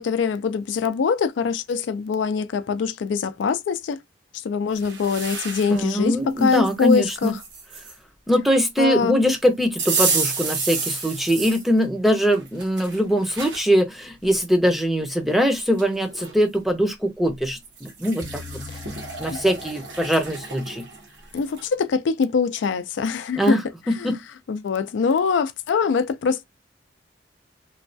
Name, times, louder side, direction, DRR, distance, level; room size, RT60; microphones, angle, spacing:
voice 1, 0.0-4.0 4.4-7.3 8.8-9.3 21.3-23.6 24.0-24.1 24.5-26.4, left 5 dB, 90° left, 0.4 m, -23 dB
sound 1, 4.7-5.9 6.4-8.0 9.8-11.7 12.2-13.7 14.2-14.3 15.4-15.5 15.8-16.4 17.6-21.7, right 5 dB, 85° right, 0.9 m, -30 dB
voice 2, 5.7-7.4 8.3-20.8 23.3-23.6 23.9-24.2, equal, ahead, 0.5 m, -22 dB
sound 2, 18.2-20.6, left 4 dB, 65° left, 0.7 m, -40 dB
3.1 x 2.3 x 2.5 m
head